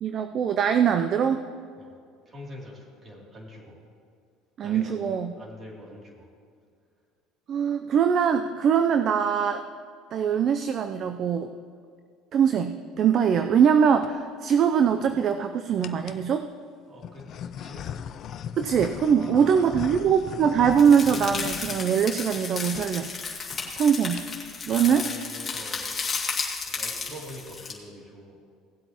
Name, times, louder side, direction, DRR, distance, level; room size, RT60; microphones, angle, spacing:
voice 1, 0.0-1.4 4.6-5.3 7.5-9.7 10.1-11.5 12.3-16.5 18.6-23.1 23.8-24.2 24.7-25.1, right 7 dB, 50° right, 8 dB, 0.5 m, -22 dB
voice 2, 2.3-3.8 4.6-6.3 16.9-17.3 17.6-17.9 19.0-20.0 23.6-23.8 24.8-25.9 26.7-28.4, equal, 35° right, -2 dB, 2.8 m, -44 dB
sound 1, 13.9-14.1 14.8-15.3 15.8-16.3 17.0-22.4 22.7-22.9 23.2-23.3 23.5-23.8 24.1-24.5, left 8 dB, 50° left, 0.4 m, -39 dB
sound 2, 20.8-27.7, left 4 dB, 30° left, 2.2 m, -33 dB
17.5 x 8.0 x 3.0 m, 2.2 s
supercardioid pair, 90°, 0 cm